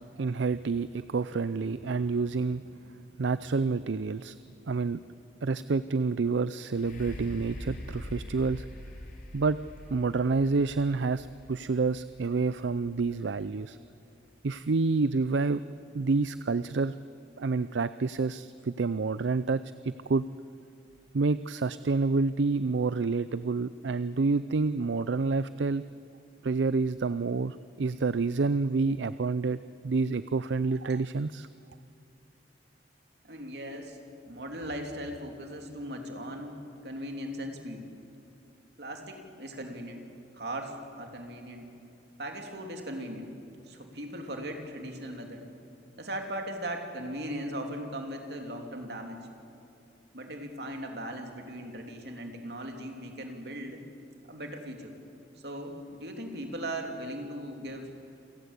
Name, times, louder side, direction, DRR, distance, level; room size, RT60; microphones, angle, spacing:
voice 1, 0.0-2.6 3.2-4.4 4.7-5.0 5.4-8.7 9.3-9.6 9.9-13.8 14.4-15.6 15.9-16.9 17.4-20.2 21.1-25.8 26.4-29.6 29.8-31.5, right 4 dB, 80° right, 14 dB, 0.5 m, -28 dB
sound 1, 6.7-14.5 15.1-15.2, left 1 dB, 45° left, 3.3 m, -44 dB
voice 2, 33.2-34.0 34.2-37.9 38.8-40.1 40.3-41.7 42.2-43.3 43.6-45.4 46.0-49.2 50.1-53.8 54.2-54.9 55.4-57.9, right 1 dB, 60° right, 3 dB, 3.2 m, -38 dB
28.0 x 17.5 x 8.4 m, 2.7 s
head